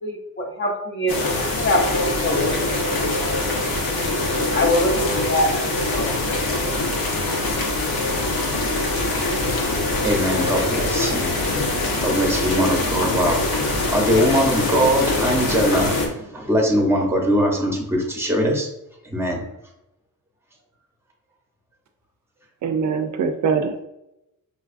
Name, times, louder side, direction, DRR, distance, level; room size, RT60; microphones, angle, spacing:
voice 1, 0.0-3.1 4.2-6.7, left 1 dB, 35° left, 2 dB, 0.5 m, -25 dB
sound 1, 1.1-16.1, left 2 dB, 75° left, 0.9 m, -23 dB
voice 2, 10.0-11.4 12.0-18.7 19.0-19.4, equal, 5° right, 1 dB, 0.7 m, -21 dB
voice 3, 22.6-23.8, right 6 dB, 55° right, 6 dB, 0.4 m, -22 dB
5.5 x 2.3 x 2.5 m, 0.88 s
wide cardioid pair, 150°, 35 cm